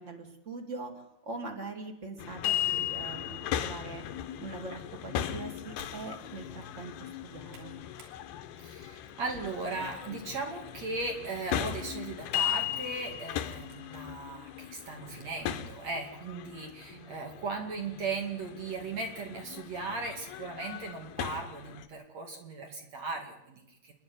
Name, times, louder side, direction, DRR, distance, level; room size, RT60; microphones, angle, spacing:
voice 1, 0.0-4.0 4.4-7.7 16.9-17.2, right 3 dB, 25° right, 3 dB, 1.9 m, -42 dB
sound 1, 2.2-21.9, left 11 dB, 75° left, 3.0 m, -37 dB
sound 2, 5.8-6.0 6.5-6.7 7.1-8.2 8.6-8.8 9.5-10.8 11.3-11.4 12.2-14.0 14.6-14.7 15.5-15.9, right 4 dB, 75° right, 5.2 m, -58 dB
voice 2, 8.6-23.9, right 3 dB, 45° right, 2 dB, 3.1 m, -37 dB
29.0 x 10.5 x 9.5 m, 0.81 s
omnidirectional pair, 4.6 m